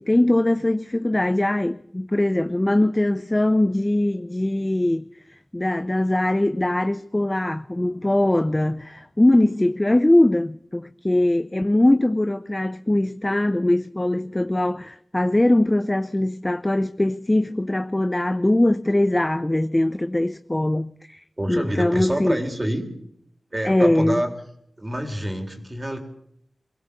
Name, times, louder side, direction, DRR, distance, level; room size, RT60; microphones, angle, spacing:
voice 1, 0.0-5.0 5.5-22.4 23.6-24.2, left 1 dB, 20° left, 0.7 m, -21 dB
voice 2, 21.4-22.9 23.5-24.3 24.8-26.0, right 1 dB, 30° right, 3.8 m, -27 dB
23.0 x 17.0 x 6.9 m
wide cardioid pair, 65°, 0 cm